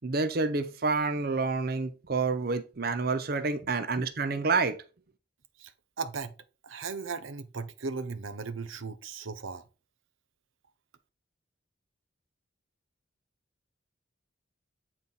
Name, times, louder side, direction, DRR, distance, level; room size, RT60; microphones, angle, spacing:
voice 1, 0.0-4.8, right 4 dB, 50° right, 0.7 m, -28 dB
voice 2, 6.0-6.3 6.6-9.7, right 4 dB, 90° right, 0.7 m, -37 dB
8.7 x 4.1 x 4.0 m
head